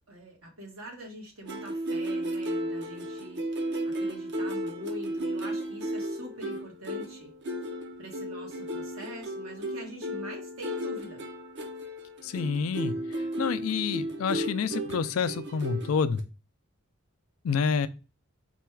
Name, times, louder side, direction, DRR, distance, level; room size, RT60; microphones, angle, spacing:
voice 1, 0.1-3.5 3.8-7.3 8.0-11.2, equal, 85° right, 1.5 m, -44 dB
sound 1, 1.5-16.2, right 1 dB, 55° right, 0.8 m, -34 dB
voice 2, 12.2-16.2 17.4-17.9, left 6 dB, 85° left, 0.4 m, -28 dB
4.1 x 2.3 x 4.4 m
head